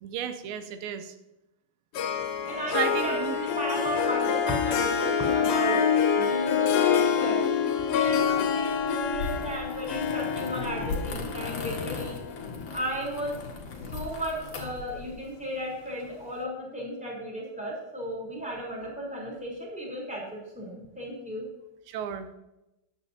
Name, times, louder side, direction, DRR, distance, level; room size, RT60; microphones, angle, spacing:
voice 1, 0.0-1.1 2.7-3.4 21.9-22.4, right 9 dB, 80° right, 9 dB, 2.5 m, -33 dB
Harp, 1.9-13.4, left 7 dB, 75° left, 2.6 m, -27 dB
voice 2, 2.4-5.8 6.2-7.5 7.9-12.2 12.7-13.3 13.9-21.5, equal, ahead, -4 dB, 3.0 m, -34 dB
sound 1, 8.0-15.2, left 4 dB, 55° left, 2.1 m, -38 dB
14.0 x 9.8 x 2.8 m, 0.94 s
omnidirectional pair, 4.4 m